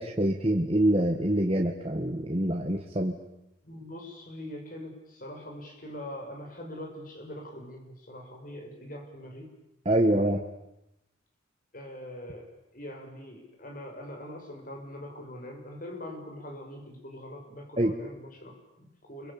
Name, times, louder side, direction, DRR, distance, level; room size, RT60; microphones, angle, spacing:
voice 1, 0.0-3.2 9.9-10.4 17.8-17.9, right 1 dB, 30° right, 2 dB, 1.7 m, -25 dB
voice 2, 3.6-9.5 11.7-19.3, left 1 dB, 45° left, 3 dB, 6.4 m, -43 dB
28.5 x 24.0 x 8.7 m, 0.88 s
head